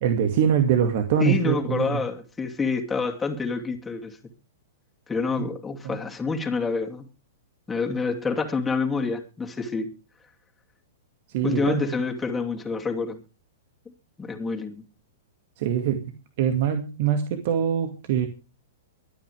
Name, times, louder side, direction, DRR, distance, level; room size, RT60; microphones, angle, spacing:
voice 1, 0.0-2.0 5.4-5.5 5.8-6.0 11.3-11.8 15.6-16.0 16.4-18.3, right 8 dB, 55° right, 2.2 m, -23 dB
voice 2, 1.2-4.2 5.1-7.0 7.7-9.9 11.4-13.2 14.2-14.8, left 4 dB, 10° left, 2.7 m, -27 dB
24.0 x 9.2 x 3.5 m
hypercardioid pair, 120°, 0 cm